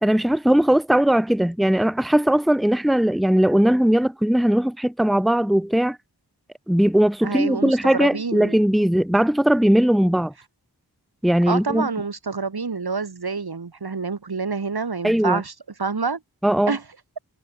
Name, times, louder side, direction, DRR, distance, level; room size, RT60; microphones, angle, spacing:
voice 1, 0.0-6.0 6.7-10.3 11.2-11.9 15.0-15.4 16.4-16.8, right 1 dB, ahead, 1.0 m, -19 dB
voice 2, 7.2-8.6 11.5-15.5 15.8-16.2 16.7-16.8, right 4 dB, 70° right, 1.6 m, -27 dB
wide cardioid pair, 50°, 40 cm